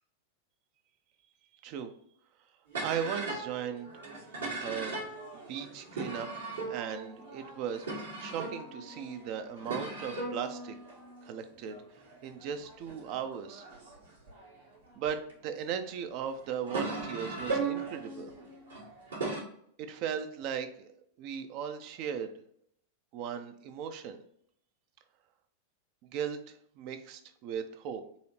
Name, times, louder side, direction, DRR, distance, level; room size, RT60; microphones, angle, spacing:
sound 1, 2.7-15.3 15.9-19.4, right 3 dB, 70° right, 1.3 m, -39 dB
voice 1, 2.8-3.9 4.6-5.0 5.3-6.3 6.7-10.8 11.2-11.8 12.2-13.7 15.0-18.3 19.9-20.9 21.2-22.3 23.1-24.2 26.1-28.0, right 8 dB, 45° right, 8 dB, 0.4 m, -37 dB
4.0 x 2.8 x 2.9 m, 0.67 s
figure-of-eight pair, 90°, 0 cm